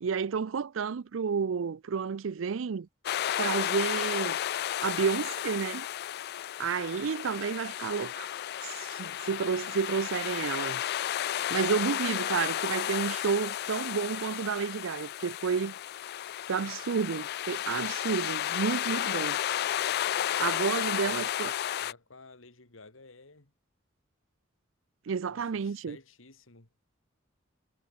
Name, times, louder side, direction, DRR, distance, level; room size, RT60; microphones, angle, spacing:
voice 1, 0.0-2.9 3.4-4.4 4.8-5.9 6.6-8.3 8.6-10.8 11.5-15.7 16.5-19.4 20.4-21.5 25.1-26.0, right 6 dB, 75° right, 0.5 m, -31 dB
sound 1, 3.1-21.9, left 11 dB, 55° left, 0.3 m, -33 dB
voice 2, 20.9-23.5 25.3-26.7, left 3 dB, 85° left, 2.6 m, -54 dB
head